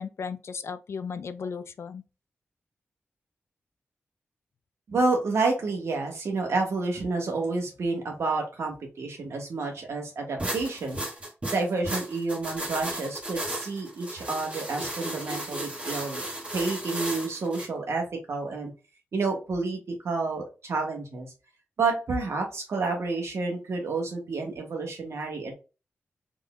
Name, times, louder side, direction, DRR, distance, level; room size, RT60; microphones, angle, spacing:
voice 1, 0.0-2.0, left 6 dB, 70° left, 0.4 m, -35 dB
voice 2, 4.9-11.0 11.5-16.3 16.5-18.7 19.1-19.8 20.0-21.3 21.8-25.5, right 3 dB, 75° right, 1.4 m, -29 dB
sound 1, 10.4-17.7, right 1 dB, 30° right, 1.5 m, -34 dB
3.7 x 3.7 x 2.3 m
wide cardioid pair, 80°, 5 cm